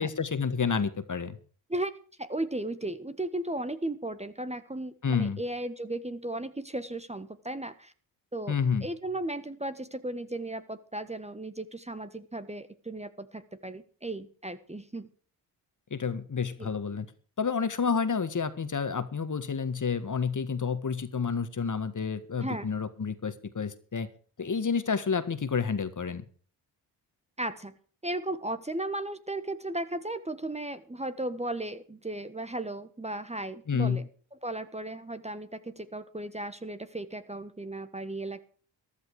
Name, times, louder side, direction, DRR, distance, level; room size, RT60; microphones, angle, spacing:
voice 1, 0.0-1.4 5.0-5.4 8.5-8.9 15.9-17.1 17.4-24.1 24.4-26.2 33.7-34.0, left 6 dB, 40° left, 12 dB, 1.8 m, -29 dB
voice 2, 2.2-7.9 8.3-8.6 8.8-15.1 16.6-16.7 22.4-22.7 27.4-27.7 28.0-34.1 34.4-38.4, right 1 dB, 15° right, 12 dB, 1.4 m, -35 dB
14.0 x 12.0 x 4.9 m, 0.42 s
supercardioid pair, 50°, 47 cm